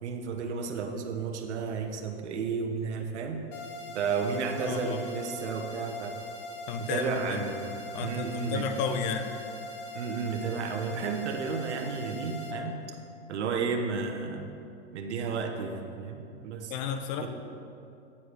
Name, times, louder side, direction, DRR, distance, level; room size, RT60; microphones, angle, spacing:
voice 1, 0.0-3.4 3.9-6.2 6.8-7.7 8.0-8.7 9.9-12.8 13.3-14.5 14.9-16.7 17.2-17.3, right 5 dB, 80° right, 3 dB, 1.0 m, -32 dB
sound 1, 3.5-12.5, left 1 dB, 60° left, 1.5 m, -41 dB
voice 2, 4.6-5.0 6.7-7.5 7.9-9.3 16.7-17.3, left 6 dB, 45° left, 7 dB, 0.7 m, -32 dB
8.6 x 4.7 x 6.7 m, 2.7 s
hypercardioid pair, 125°, 34 cm